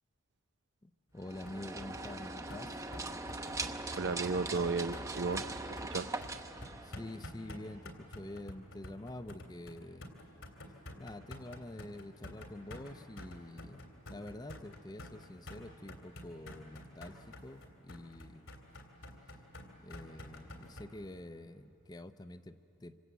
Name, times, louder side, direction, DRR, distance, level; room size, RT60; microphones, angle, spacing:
voice 1, 0.8-2.9 6.8-10.2 11.0-18.5 19.8-23.0, left 1 dB, 20° left, 11 dB, 0.6 m, -47 dB
sound 1, 1.2-7.4, right 2 dB, 15° right, 0.8 m, -41 dB
sound 2, 1.5-20.9, left 1 dB, 75° left, 3.2 m, -49 dB
voice 2, 4.0-6.1, right 4 dB, 55° right, 13 dB, 0.5 m, -34 dB
26.5 x 26.0 x 8.3 m, 2.9 s
head